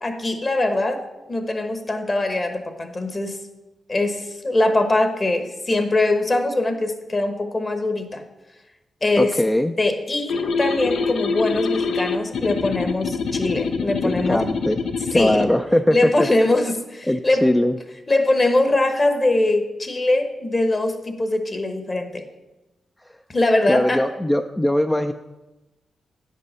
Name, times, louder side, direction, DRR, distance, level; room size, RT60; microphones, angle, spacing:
voice 1, 0.0-3.4 3.9-8.2 9.0-9.4 9.8-14.5 15.1-15.5 15.9-17.5 18.1-22.2 23.3-24.0, left 2 dB, 30° left, 7 dB, 1.0 m, -22 dB
voice 2, 9.2-9.7 14.0-14.8 15.1-16.3 17.1-17.7 23.7-25.1, left 1 dB, 10° left, 6 dB, 0.3 m, -20 dB
sound 1, 10.3-15.5, left 4 dB, 80° left, 0.6 m, -25 dB
9.3 x 5.4 x 5.5 m, 1.0 s
cardioid pair, 85°, 0 cm